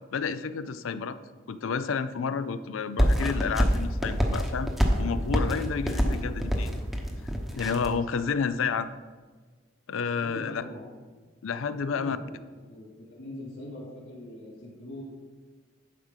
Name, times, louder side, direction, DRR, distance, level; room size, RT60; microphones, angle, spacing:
voice 1, 0.1-1.2 1.5-4.7 5.0-6.8 7.6-9.0 9.9-10.6 11.4-12.2, left 5 dB, 75° left, 13 dB, 0.4 m, -30 dB
sound 1, 3.0-8.0, equal, ahead, 0.9 m, -26 dB
voice 2, 10.2-10.9 11.8-12.2 12.5-15.0, left 1 dB, 60° left, -9 dB, 2.7 m, -42 dB
11.0 x 4.9 x 5.6 m, 1.4 s
head